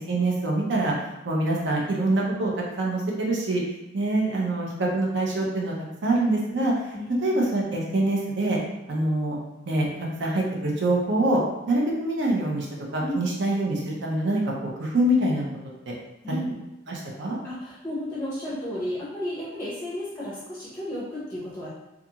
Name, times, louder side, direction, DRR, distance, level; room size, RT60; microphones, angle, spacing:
voice 1, 0.1-0.9 1.2-2.5 2.8-3.6 3.9-5.7 6.0-6.7 7.2-8.6 8.9-9.4 9.7-11.4 11.7-12.7 12.9-14.4 14.8-15.5 15.9-16.0 16.9-17.4, right 1 dB, 60° right, -2 dB, 0.6 m, -25 dB
voice 2, 6.9-7.4 13.0-13.3 16.2-16.5 17.4-21.7, equal, 10° left, -8 dB, 0.6 m, -33 dB
2.4 x 2.4 x 2.8 m, 1.0 s
head